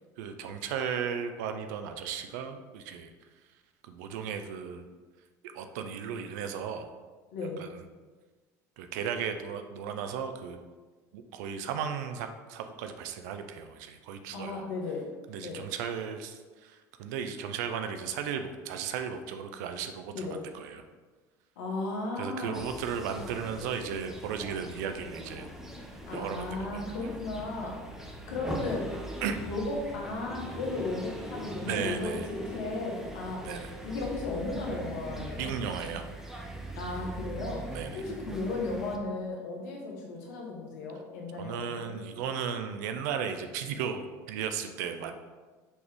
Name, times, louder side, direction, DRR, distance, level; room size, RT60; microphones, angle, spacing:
voice 1, 0.2-3.1 3.8-4.8 5.4-6.9 7.6-7.8 8.8-10.6 11.1-14.7 15.3-20.8 22.2-25.5 26.1-27.1 29.2-29.5 31.6-32.3 33.4-33.7 35.4-36.1 37.7-38.0 41.4-45.1, right 7 dB, 80° right, 7 dB, 0.4 m, -35 dB
voice 2, 14.3-15.0 15.4-15.6 20.1-20.4 21.6-22.6 26.1-27.8 28.3-28.9 29.4-33.5 33.8-35.5 36.8-41.9, left 3 dB, 80° left, -1 dB, 1.0 m, -35 dB
sound 1, 22.5-39.0, right 1 dB, 5° right, 0.6 m, -41 dB
4.3 x 2.9 x 3.4 m, 1.4 s
hypercardioid pair, 80°, 9 cm